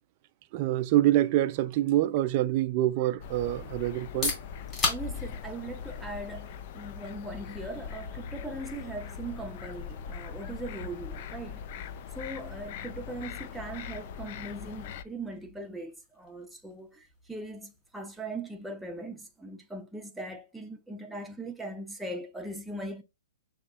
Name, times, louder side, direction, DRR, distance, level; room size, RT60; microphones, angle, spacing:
voice 1, 0.5-4.3, right 14 dB, 45° right, 0.4 m, -26 dB
sound 1, 3.2-15.0, left 7 dB, 50° left, 0.5 m, -41 dB
sound 2, 3.9-19.6, left 3 dB, 20° left, 2.2 m, -42 dB
voice 2, 4.9-11.9 12.1-23.0, right 2 dB, 5° right, 0.7 m, -40 dB
6.4 x 2.8 x 2.4 m
hypercardioid pair, 130°, 0 cm